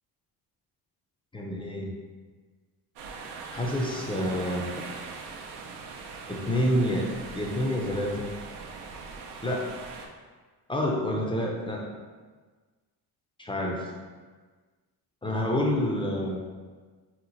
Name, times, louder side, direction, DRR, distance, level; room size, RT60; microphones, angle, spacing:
voice 1, 1.3-1.9 3.5-4.7 6.3-8.3 9.4-9.8 10.7-11.8 13.4-13.9 15.2-16.4, left 1 dB, 15° left, -1 dB, 0.3 m, -28 dB
sound 1, 3.0-10.1, right 4 dB, 85° right, 0.5 m, -41 dB
2.9 x 2.1 x 3.9 m, 1.4 s
cardioid pair, 105°, 40 cm